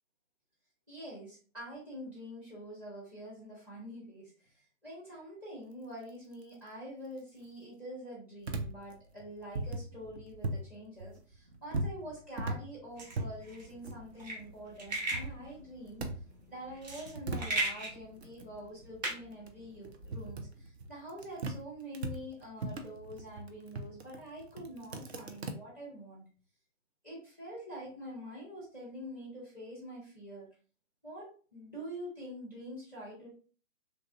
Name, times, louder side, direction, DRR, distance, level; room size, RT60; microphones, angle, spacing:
voice 1, 0.9-4.3 4.8-16.0 16.5-26.2 27.0-30.5 31.0-33.3, equal, 5° right, -5 dB, 0.5 m, -46 dB
sound 1, 8.4-10.7 11.0-14.5 14.8-16.4 16.7-21.6 21.9-25.5, right 2 dB, 55° right, 0.5 m, -39 dB
sound 2, 13.0-20.2, right 2 dB, 35° right, 0.8 m, -38 dB
3.0 x 2.3 x 2.4 m, 0.39 s
figure-of-eight pair, 130°, 39 cm